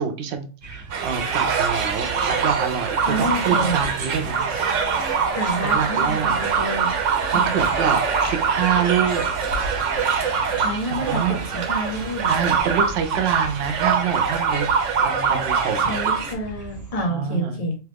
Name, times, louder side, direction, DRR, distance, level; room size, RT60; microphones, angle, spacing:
voice 1, 0.0-4.4 5.6-6.4 7.3-9.2 10.9-11.4 12.3-14.7 15.0-15.9 17.0-17.6, right 7 dB, 65° right, 7 dB, 0.8 m, -26 dB
sound 1, 0.6-17.0, right 4 dB, 35° right, 1.2 m, -38 dB
sound 2, 0.9-16.3, right 6 dB, 90° right, 1.0 m, -23 dB
voice 2, 3.0-3.8 5.4-6.9 7.3-7.6 10.6-12.3 15.8-17.8, equal, 40° left, 2 dB, 0.6 m, -28 dB
2.9 x 2.3 x 3.4 m, 0.36 s
omnidirectional pair, 1.2 m